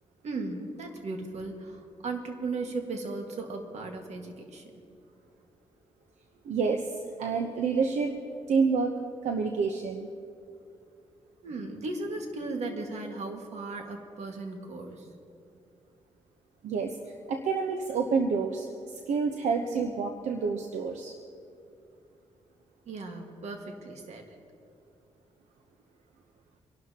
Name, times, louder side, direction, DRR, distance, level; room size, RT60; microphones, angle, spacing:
voice 1, 0.2-4.7 11.4-15.2 22.9-24.4, right 3 dB, 70° right, 3 dB, 1.8 m, -36 dB
voice 2, 6.5-6.9 7.2-8.2 8.5-8.9 9.2-10.1 16.6-17.0 17.3-18.7 19.1-21.1, right 5 dB, 90° right, 4 dB, 0.9 m, -28 dB
26.0 x 12.0 x 2.9 m, 2.5 s
cardioid pair, 85°, 12 cm